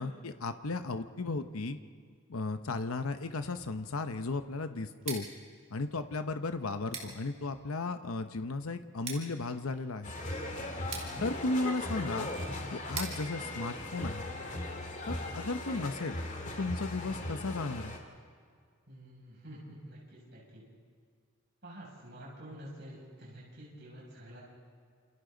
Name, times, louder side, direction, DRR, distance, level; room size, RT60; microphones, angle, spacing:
voice 1, 0.0-1.8 2.3-5.3 5.7-10.1 11.2-12.3 12.7-14.2 15.1-16.2 16.6-18.0, left 3 dB, 85° left, 9 dB, 0.9 m, -35 dB
Scissors, 4.9-14.7, right 5 dB, 30° right, 3.9 m, -47 dB
sound 1, 10.0-18.0, left 1 dB, 35° left, 2.4 m, -38 dB
voice 2, 18.9-20.6 21.6-24.4, right 1 dB, 55° right, -5 dB, 6.8 m, -48 dB
29.0 x 28.0 x 3.9 m, 2.1 s
head